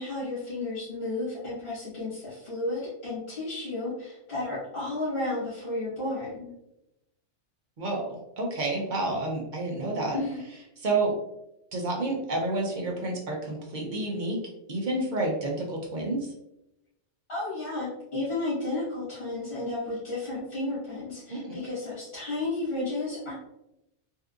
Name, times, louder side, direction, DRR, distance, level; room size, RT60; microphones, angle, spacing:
voice 1, 0.0-6.5 10.1-10.4 17.3-23.3, left 2 dB, 55° left, -11 dB, 1.6 m, -32 dB
voice 2, 8.4-10.2 10.8-11.1 11.7-14.4 14.7-16.2 21.3-21.6, right 2 dB, 50° right, -2 dB, 0.8 m, -29 dB
3.4 x 2.7 x 2.4 m, 0.86 s
omnidirectional pair, 1.2 m